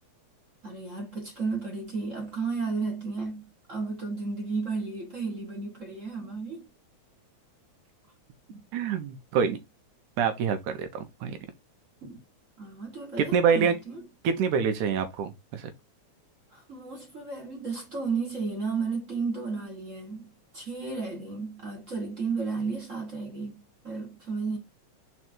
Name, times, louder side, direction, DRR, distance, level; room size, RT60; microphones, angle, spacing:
voice 1, 0.6-6.7 8.5-8.6 12.0-12.2 12.6-14.0 16.5-24.6, right 4 dB, 30° right, 1.7 m, -33 dB
voice 2, 8.7-9.6 10.2-11.4 13.2-13.7 14.2-15.7, right 6 dB, 85° right, 2.6 m, -26 dB
5.1 x 4.8 x 4.4 m
omnidirectional pair, 3.4 m